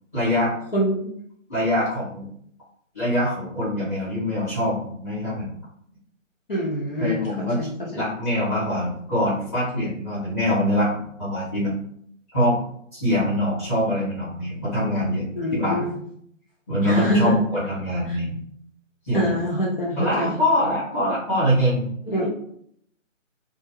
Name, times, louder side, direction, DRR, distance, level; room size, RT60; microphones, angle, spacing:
voice 1, 0.1-0.5 1.5-2.3 2.9-5.5 7.0-11.7 12.3-12.6 12.9-15.8 16.7-18.4 19.1-19.3 20.0-21.9, left 1 dB, 10° left, -14 dB, 1.1 m, -24 dB
voice 2, 0.7-1.1 6.5-7.3 7.5-7.7 15.4-16.0 16.8-17.4 18.1-18.2 19.1-20.4 22.1-22.3, equal, 45° left, -5 dB, 0.6 m, -25 dB
2.3 x 2.1 x 3.0 m, 0.67 s
hypercardioid pair, 170°, 39 cm